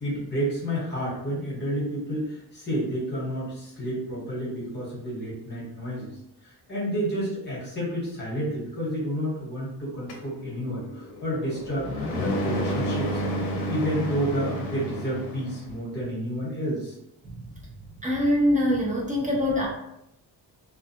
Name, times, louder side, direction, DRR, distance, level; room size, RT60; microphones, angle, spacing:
voice 1, 0.0-6.1 6.4-13.2 13.7-16.9, equal, 25° left, -6 dB, 1.1 m, -30 dB
sound 1, 10.1-15.7, equal, 60° left, 0.6 m, -31 dB
voice 2, 17.2-17.6 18.0-19.7, left 1 dB, 20° right, -3 dB, 0.4 m, -24 dB
2.4 x 2.2 x 2.7 m, 0.82 s
cardioid pair, 155°, 43 cm